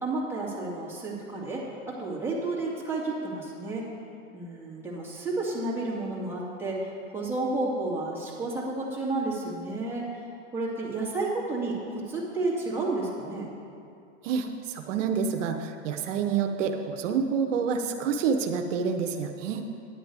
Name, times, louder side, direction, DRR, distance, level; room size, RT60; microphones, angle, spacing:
voice 1, 0.0-3.9 4.3-10.0 10.5-13.5, right 2 dB, 5° right, -6 dB, 2.3 m, -31 dB
voice 2, 14.2-19.6, right 6 dB, 75° right, 5 dB, 0.8 m, -28 dB
10.5 x 8.9 x 4.7 m, 2.6 s
supercardioid pair, 130°, 37 cm